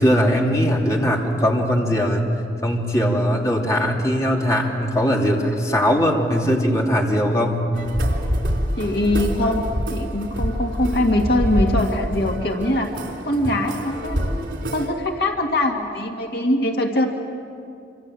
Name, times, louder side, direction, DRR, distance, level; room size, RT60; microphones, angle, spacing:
voice 1, 0.0-2.2 2.6-7.6, equal, 20° left, -1 dB, 3.0 m, -20 dB
sound 1, 7.7-14.9, equal, 85° right, 3.9 m, -26 dB
voice 2, 8.8-9.6 9.9-12.9 13.2-14.4 14.7-17.1, left 1 dB, 60° left, 1 dB, 2.1 m, -22 dB
26.5 x 26.5 x 7.7 m, 2.5 s
head